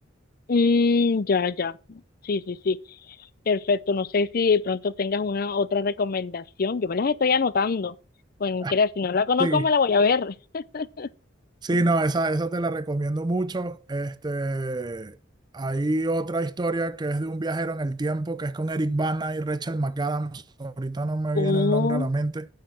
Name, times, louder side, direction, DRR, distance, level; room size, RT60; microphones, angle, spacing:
voice 1, 0.5-2.8 3.5-7.9 8.4-11.1 21.3-22.1, left 4 dB, 50° left, 0.5 m, -24 dB
voice 2, 11.6-15.2 15.5-22.5, right 2 dB, 20° right, 0.5 m, -27 dB
9.4 x 6.7 x 6.0 m
head